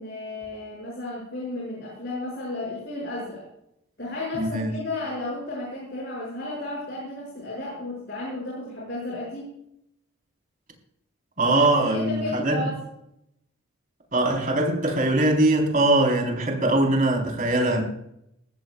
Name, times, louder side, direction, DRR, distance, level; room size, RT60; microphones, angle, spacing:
voice 1, 0.0-3.4 4.0-9.6 11.4-12.8, left 2 dB, 50° left, 6.3 m, -33 dB
voice 2, 4.3-4.7 11.4-12.7 14.1-17.8, right 2 dB, 40° right, 4.3 m, -22 dB
20.5 x 15.5 x 2.4 m
head